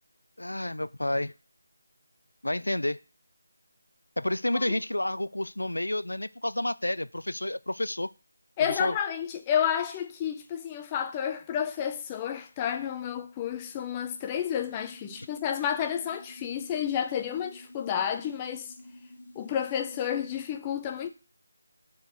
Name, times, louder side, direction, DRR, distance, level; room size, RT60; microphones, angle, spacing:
voice 1, 0.4-1.3 2.4-3.0 4.2-8.1 8.7-8.9, left 1 dB, 75° left, 0.3 m, -30 dB
voice 2, 8.6-18.7 19.4-21.1, left 9 dB, 15° left, 0.6 m, -30 dB
sound 1, 14.6-20.5, left 1 dB, 45° left, 3.4 m, -50 dB
6.6 x 4.6 x 6.7 m
figure-of-eight pair, 160°, 0 cm